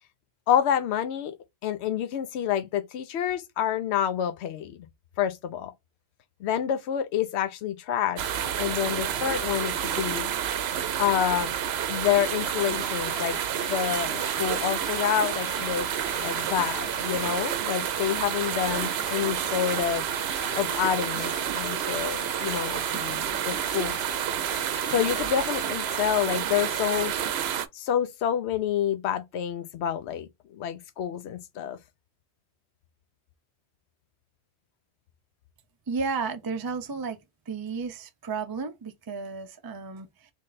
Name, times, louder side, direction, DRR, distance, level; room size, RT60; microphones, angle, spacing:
voice 1, 0.5-1.3 1.6-4.8 5.2-5.7 6.4-10.3 11.0-11.5 11.9-13.4 13.7-15.9 16.2-20.0 20.5-23.9 24.9-27.1 27.7-31.8, left 9 dB, 85° left, 0.9 m, -28 dB
sound 1, 8.2-27.7, right 9 dB, 75° right, 0.8 m, -29 dB
sound 2, 13.0-23.2 23.7-25.6, left 7 dB, 55° left, 0.6 m, -44 dB
voice 2, 35.9-37.2 37.5-40.3, right 4 dB, 30° right, 0.4 m, -33 dB
3.4 x 3.2 x 3.9 m
omnidirectional pair, 1.1 m